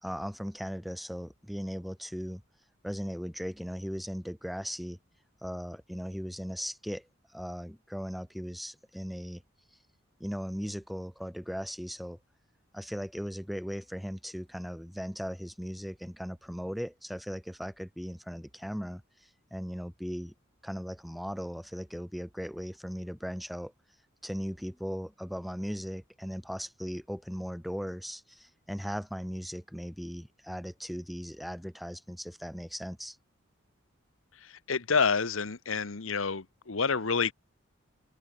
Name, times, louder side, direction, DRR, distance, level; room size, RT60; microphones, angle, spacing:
voice 1, 0.0-2.4 2.8-5.0 5.4-7.1 7.3-9.4 10.2-12.2 12.7-19.0 19.5-20.3 20.6-23.7 24.2-33.2, equal, ahead, 4.1 m, -38 dB
voice 2, 34.7-37.3, left 5 dB, 90° left, 1.2 m, -28 dB
open air
head